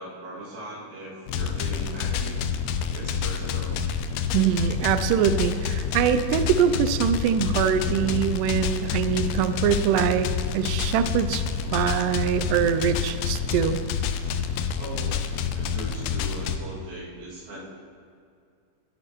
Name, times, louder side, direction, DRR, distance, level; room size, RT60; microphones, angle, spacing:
voice 1, 0.0-2.4 2.9-3.7 14.8-15.2 15.5-17.6, right 1 dB, 75° right, -7 dB, 4.1 m, -39 dB
sound 1, 1.3-16.6, left 7 dB, 85° left, 1.9 m, -28 dB
voice 2, 4.3-10.3 10.5-11.4 11.7-13.8, right 9 dB, 90° right, 11 dB, 1.8 m, -23 dB
15.5 x 8.9 x 3.0 m, 2.3 s
omnidirectional pair, 4.3 m